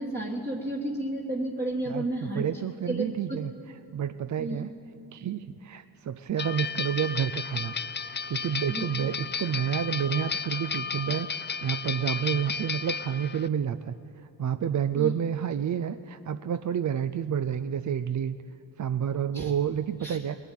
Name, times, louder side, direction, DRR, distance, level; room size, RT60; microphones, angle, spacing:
voice 1, 0.0-2.4 2.9-3.4 4.4-4.7 8.7-8.9 15.0-15.1 19.3-19.5 20.0-20.2, right 1 dB, 25° right, -1 dB, 1.6 m, -32 dB
voice 2, 2.3-3.5 3.9-4.7 5.1-13.9 14.4-18.4 18.8-20.4, right 8 dB, 45° right, 11 dB, 0.5 m, -29 dB
sound 1, 6.4-13.5, left 6 dB, 25° left, 0.4 m, -33 dB
20.5 x 7.3 x 9.2 m, 2.8 s
cardioid pair, 55°, 44 cm